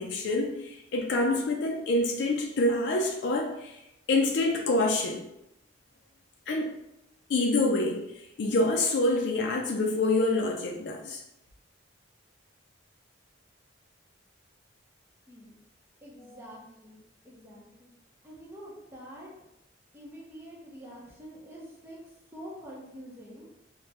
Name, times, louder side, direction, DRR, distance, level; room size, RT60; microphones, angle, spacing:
voice 1, 0.0-3.8 4.1-5.2 6.5-6.8 7.3-8.0 8.4-11.2, left 2 dB, 60° left, 0 dB, 0.4 m, -26 dB
voice 2, 16.0-17.9 18.2-19.3 19.9-22.0 22.3-23.5, equal, 10° right, -5 dB, 0.7 m, -46 dB
3.3 x 2.1 x 2.8 m, 0.86 s
head